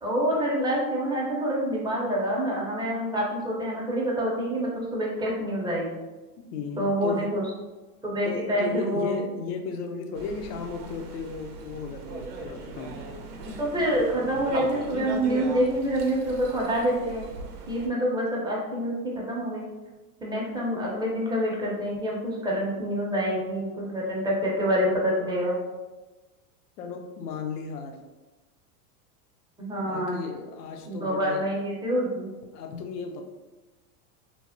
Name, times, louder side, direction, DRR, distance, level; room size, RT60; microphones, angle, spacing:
voice 1, 0.0-6.0 6.8-7.4 8.0-9.1 13.6-17.3 17.7-19.7 20.2-25.6 29.6-30.2 30.9-32.3, equal, 10° right, -4 dB, 0.5 m, -27 dB
voice 2, 6.5-7.3 8.2-13.0 26.8-28.0 29.7-31.5 32.5-33.2, left 5 dB, 80° left, 4 dB, 0.6 m, -35 dB
sound 1, 10.2-17.9, right 2 dB, 85° right, 0.6 m, -39 dB
3.3 x 2.0 x 2.5 m, 1.2 s
hypercardioid pair, 110°, 46 cm